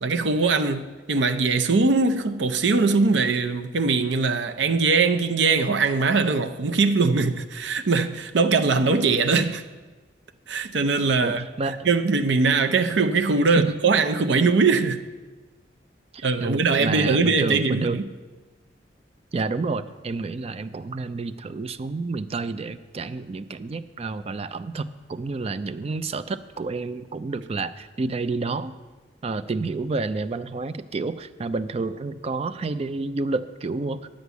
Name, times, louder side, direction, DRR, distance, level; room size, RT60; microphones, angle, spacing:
voice 1, 0.0-9.6 10.5-11.5 11.8-15.0 16.2-18.0, right 4 dB, 80° right, 0.6 m, -21 dB
voice 2, 11.2-11.9 12.8-13.0 13.6-13.7 16.1-18.0 19.3-28.7 29.2-34.0, right 3 dB, 35° right, 0.4 m, -29 dB
9.8 x 5.2 x 8.1 m
head